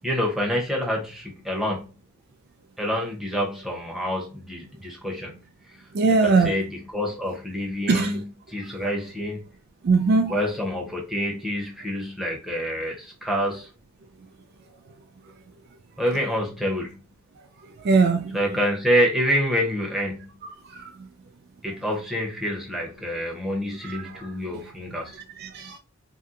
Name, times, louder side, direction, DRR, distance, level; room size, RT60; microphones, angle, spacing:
voice 1, 0.0-1.9 2.8-5.4 5.7-5.8 6.2-9.4 10.3-13.7 16.0-16.9 18.3-20.3 21.6-25.2, equal, ahead, 0.8 m, -27 dB
voice 2, 5.9-6.6 7.9-8.2 9.8-10.3 17.8-18.4 20.7-20.9 23.8-24.3 25.4-25.8, right 4 dB, 50° right, 0.3 m, -21 dB
2.7 x 2.2 x 3.6 m
head